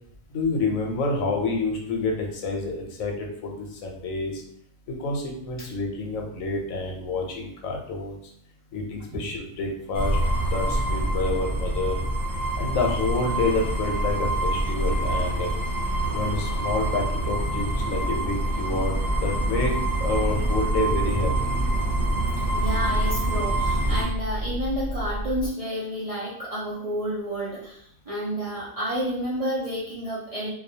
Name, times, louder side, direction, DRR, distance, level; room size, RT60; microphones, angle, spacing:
voice 1, 0.3-4.4 4.9-8.2 8.7-10.2 10.5-12.0 12.6-15.5 16.1-18.9 19.2-21.5, left 3 dB, 85° left, 0 dB, 1.0 m, -28 dB
sound 1, 9.9-24.0, right 1 dB, 30° right, 1.0 m, -26 dB
sound 2, 18.6-25.5, right 1 dB, 90° right, 1.0 m, -30 dB
voice 2, 22.5-30.5, equal, 55° right, -9 dB, 0.4 m, -30 dB
2.3 x 2.2 x 2.7 m, 0.67 s
omnidirectional pair, 1.4 m